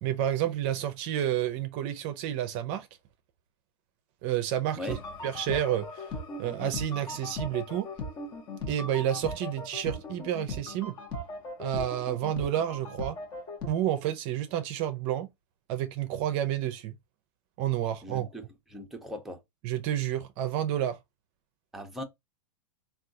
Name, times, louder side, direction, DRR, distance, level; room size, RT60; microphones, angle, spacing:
voice 1, 0.0-2.9 4.2-5.0 5.2-6.1 6.4-7.9 8.7-10.9 11.6-13.2 13.7-15.3 15.7-16.9 17.6-18.3 19.6-21.0, right 11 dB, 45° right, 0.5 m, -30 dB
sound 1, 4.9-13.7, left 2 dB, 35° left, 0.9 m, -38 dB
voice 2, 18.0-18.4 18.7-19.4 21.7-22.0, left 1 dB, ahead, 0.6 m, -38 dB
3.5 x 2.3 x 2.6 m
hypercardioid pair, 130°, 13 cm